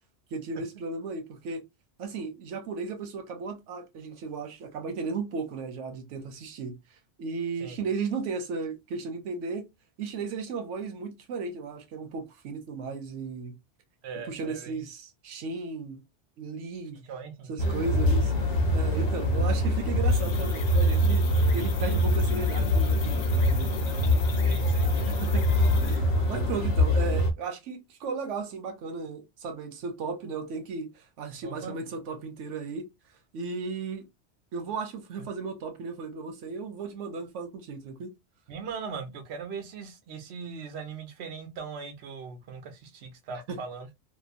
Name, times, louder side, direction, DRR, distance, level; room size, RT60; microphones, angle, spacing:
voice 1, 0.3-1.6 2.0-6.8 7.2-9.6 10.0-13.6 14.3-16.0 16.4-17.0 17.5-18.3 18.7-24.0 25.2-25.5 25.8-32.9 33.3-34.1 34.5-38.1 43.5-43.6, right 4 dB, 90° right, 1.0 m, -35 dB
voice 2, 14.0-14.7 17.0-17.8 18.9-19.0 21.4-21.5 24.4-25.1 31.4-31.8 35.2-35.3 38.5-43.9, right 5 dB, 65° right, 0.9 m, -40 dB
sound 1, 17.6-27.3, left 1 dB, 75° left, 1.0 m, -24 dB
sound 2, 20.1-26.0, left 6 dB, 55° left, 0.7 m, -43 dB
2.9 x 2.1 x 2.4 m
omnidirectional pair, 1.2 m